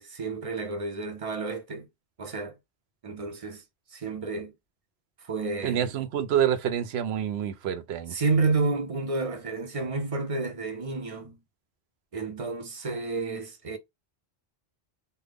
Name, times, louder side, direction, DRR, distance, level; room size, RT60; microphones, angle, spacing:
voice 1, 0.0-1.9 2.2-2.5 3.0-3.6 3.9-4.5 5.2-5.9 8.1-11.4 12.1-13.8, right 3 dB, 45° right, 0.5 m, -30 dB
voice 2, 5.6-8.2, right 9 dB, 75° right, 0.8 m, -27 dB
3.3 x 2.0 x 3.4 m
omnidirectional pair, 1.1 m